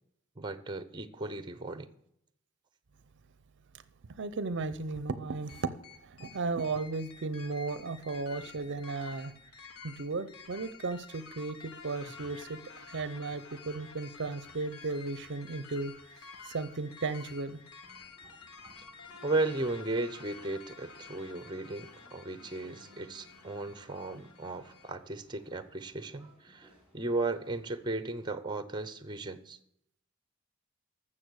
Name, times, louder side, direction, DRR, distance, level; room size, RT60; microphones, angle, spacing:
voice 1, 0.4-1.9 19.2-29.6, right 2 dB, 20° right, 13 dB, 0.8 m, -35 dB
voice 2, 4.1-9.3 9.8-17.6, right 3 dB, 60° right, 14 dB, 0.6 m, -35 dB
sound 1, 5.5-24.9, left 5 dB, 90° left, 1.4 m, -51 dB
sound 2, 17.8-27.9, equal, 5° right, 4.7 m, -62 dB
12.5 x 7.5 x 6.4 m, 0.75 s
head